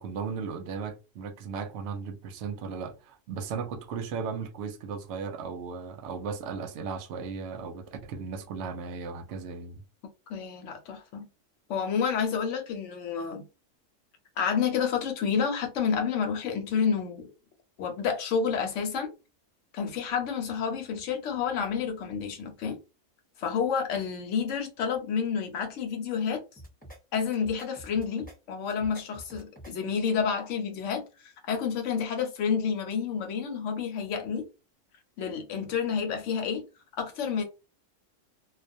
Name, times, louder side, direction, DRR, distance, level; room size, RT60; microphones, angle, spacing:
voice 1, 0.0-9.8, right 5 dB, 65° right, 0.8 m, -36 dB
voice 2, 10.3-11.3 11.7-13.4 14.4-17.3 17.8-19.1 19.7-22.8 23.4-26.4 27.1-34.5 35.2-36.6 37.0-37.4, left 6 dB, 70° left, 1.0 m, -29 dB
sound 1, 26.6-27.0 27.3-28.4 28.7-29.7, right 1 dB, 10° left, 0.6 m, -47 dB
2.3 x 2.2 x 2.6 m
omnidirectional pair, 1.4 m